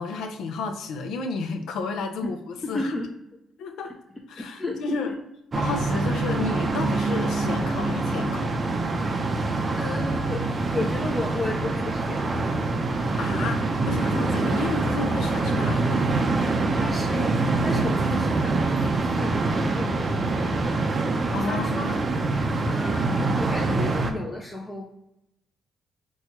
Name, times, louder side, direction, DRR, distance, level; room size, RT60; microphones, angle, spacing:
voice 1, 0.0-2.9 3.6-4.0 4.3-5.1 5.6-8.5 13.2-16.2 21.3-22.0, left 4 dB, 80° left, 6 dB, 0.4 m, -31 dB
voice 2, 2.6-3.1 4.4-5.2 9.4-12.6 13.4-13.5 16.8-21.0 21.4-22.0 22.6-24.8, left 2 dB, 20° left, -1 dB, 0.5 m, -33 dB
sound 1, 5.5-24.1, right 3 dB, 35° right, 0.5 m, -25 dB
4.2 x 2.3 x 2.9 m, 0.85 s
cardioid pair, 90°, 0 cm